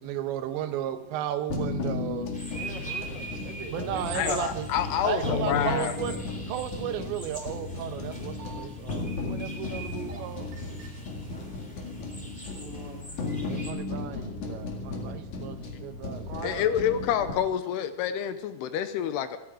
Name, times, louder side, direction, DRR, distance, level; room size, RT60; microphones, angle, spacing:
voice 1, 0.0-2.3 3.7-4.7 5.0-6.2 6.5-10.5 13.5-16.3 16.6-16.7, right 10 dB, 80° right, 8 dB, 3.3 m, -34 dB
sound 1, 1.5-17.3, left 3 dB, 50° left, 2.9 m, -35 dB
sound 2, 2.3-13.7, right 1 dB, 5° left, 1.5 m, -43 dB
voice 2, 2.5-4.4 12.6-13.0 16.3-16.8, right 4 dB, 60° right, 2 dB, 2.8 m, -41 dB
voice 3, 4.1-5.9 16.4-19.4, left 9 dB, 80° left, 10 dB, 2.6 m, -28 dB
sound 3, 7.3-7.4 8.1-8.7 9.8-10.2 10.5-10.9 11.6-12.1 12.5-12.6, right 5 dB, 35° right, 2.3 m, -46 dB
29.0 x 9.8 x 4.9 m, 0.88 s
omnidirectional pair, 5.2 m